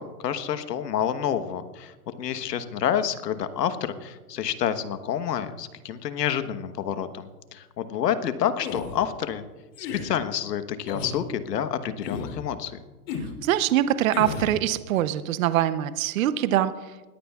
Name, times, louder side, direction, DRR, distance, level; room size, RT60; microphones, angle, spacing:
voice 1, 0.0-9.4 9.8-12.8, left 9 dB, 80° left, 11 dB, 1.3 m, -28 dB
sound 1, 8.6-9.0 9.7-10.1 10.9-11.2 12.0-12.4 13.1-13.3 14.1-14.5, left 5 dB, 50° left, 3.1 m, -33 dB
voice 2, 13.4-16.9, right 12 dB, 55° right, 13 dB, 0.8 m, -23 dB
20.5 x 14.5 x 2.4 m, 1.2 s
hypercardioid pair, 140°, 48 cm